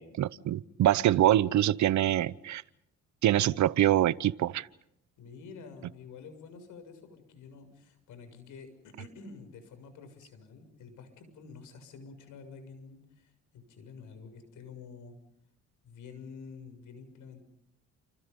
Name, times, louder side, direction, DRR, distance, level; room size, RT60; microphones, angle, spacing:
voice 1, 0.0-2.6 3.2-4.7, right 12 dB, 70° right, 0.9 m, -25 dB
voice 2, 5.2-15.1 15.8-17.5, left 5 dB, 85° left, 6.8 m, -49 dB
30.0 x 28.0 x 5.4 m
cardioid pair, 90°, 30 cm